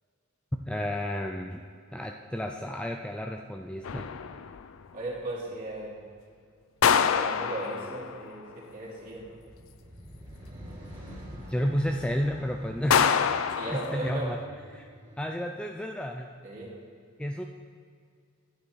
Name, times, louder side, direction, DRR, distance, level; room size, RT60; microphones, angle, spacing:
voice 1, 0.7-1.6 1.9-4.1 11.3-13.1 13.7-14.4 14.7-14.9 15.2-16.3 17.2-17.5, equal, 5° left, 3 dB, 0.4 m, -31 dB
sound 1, 3.8-4.7 6.8-8.3 12.9-14.4, left 7 dB, 80° left, 0.4 m, -26 dB
voice 2, 4.9-5.9 7.0-9.2 13.5-14.3 16.4-16.7, right 2 dB, 40° right, -6 dB, 2.9 m, -37 dB
sound 2, 9.0-15.4, equal, 20° right, 2.9 m, -47 dB
11.0 x 9.3 x 4.6 m, 2.1 s
head